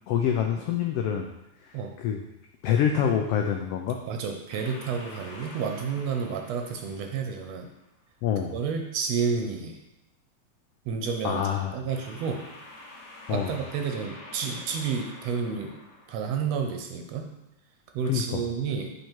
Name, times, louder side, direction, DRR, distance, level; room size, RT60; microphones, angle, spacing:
voice 1, 0.1-1.3 1.6-2.2 2.6-4.0 8.2-8.5 11.2-11.8 13.3-13.5 18.0-18.4, left 8 dB, 90° left, 3 dB, 1.3 m, -26 dB
voice 2, 4.1-7.7 8.5-9.8 10.9-12.5 13.3-15.7 16.1-17.3 17.9-18.9, right 6 dB, 75° right, 3 dB, 1.7 m, -30 dB
sound 1, 4.5-7.8 11.9-16.7, left 2 dB, 50° left, 1.3 m, -47 dB
6.7 x 4.7 x 4.4 m, 0.90 s
omnidirectional pair, 3.3 m